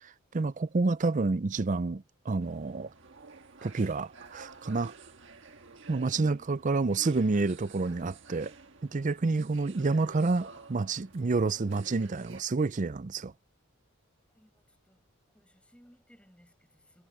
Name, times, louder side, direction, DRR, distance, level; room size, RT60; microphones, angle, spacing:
voice 1, 0.0-2.9 3.6-4.9 5.9-8.5 8.8-13.3, right 3 dB, 35° right, 0.5 m, -29 dB
sound 1, 2.4-12.4, right 3 dB, 55° right, 1.5 m, -52 dB
voice 2, 6.1-6.6 14.3-15.1 15.3-17.1, equal, 5° left, 6.0 m, -61 dB
head